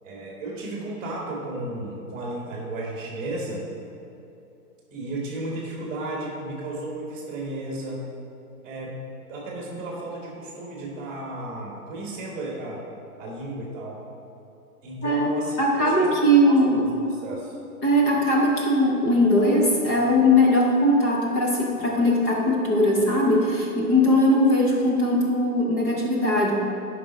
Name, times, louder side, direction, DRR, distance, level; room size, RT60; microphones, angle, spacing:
voice 1, 0.0-3.6 4.9-8.0 8.6-9.0 9.3-12.8 13.2-14.0 14.8-16.1 16.5-16.6 17.0-17.6, right 2 dB, 20° right, -2 dB, 1.4 m, -33 dB
voice 2, 15.6-16.8 17.8-26.5, left 1 dB, 10° left, -3 dB, 0.4 m, -20 dB
11.0 x 5.4 x 4.0 m, 2.9 s
hypercardioid pair, 140°, 46 cm